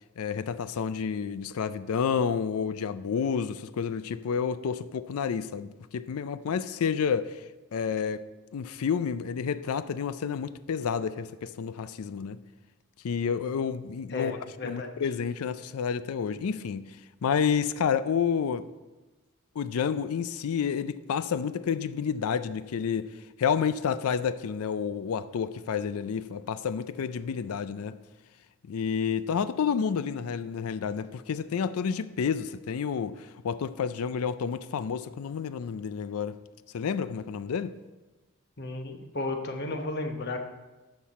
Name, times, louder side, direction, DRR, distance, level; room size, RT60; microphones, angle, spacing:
voice 1, 0.2-8.2 8.5-12.4 13.0-14.4 14.6-17.0 17.2-18.7 19.6-23.1 23.4-28.0 28.7-36.3 36.7-37.7, left 6 dB, 80° left, 0.4 m, -30 dB
voice 2, 14.1-14.9 38.6-40.4, left 3 dB, 50° left, 1.0 m, -33 dB
11.5 x 6.6 x 4.1 m
head